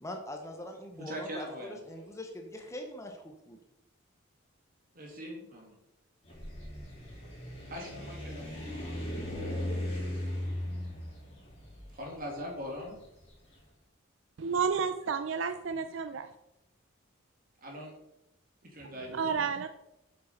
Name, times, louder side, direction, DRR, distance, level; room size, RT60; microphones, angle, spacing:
voice 1, 0.0-1.4 1.9-3.6, left 1 dB, 15° left, 3 dB, 0.9 m, -42 dB
voice 2, 0.9-1.8 4.9-5.8 7.7-9.2 11.9-13.0 17.6-17.9 18.6-19.5, equal, 45° right, -1 dB, 2.6 m, -42 dB
sound 1, 6.2-13.4, left 1 dB, 30° left, 3.1 m, -38 dB
voice 3, 14.4-16.3 18.8-19.7, right 6 dB, 65° right, 9 dB, 0.4 m, -31 dB
8.2 x 6.6 x 4.4 m, 0.89 s
head